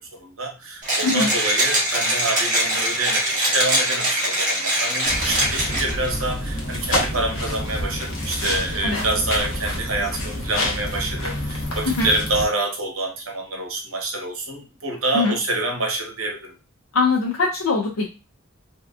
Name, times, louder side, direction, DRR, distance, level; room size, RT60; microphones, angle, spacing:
voice 1, 0.1-16.5, right 2 dB, 80° right, 1 dB, 1.0 m, -27 dB
Mechanisms, 0.8-6.1, right 1 dB, 40° right, 1.2 m, -22 dB
sound 1, 5.0-12.4, left 1 dB, 65° left, 0.9 m, -27 dB
voice 2, 16.9-18.1, left 3 dB, 85° left, -2 dB, 0.6 m, -21 dB
3.3 x 2.8 x 2.4 m, 0.30 s
head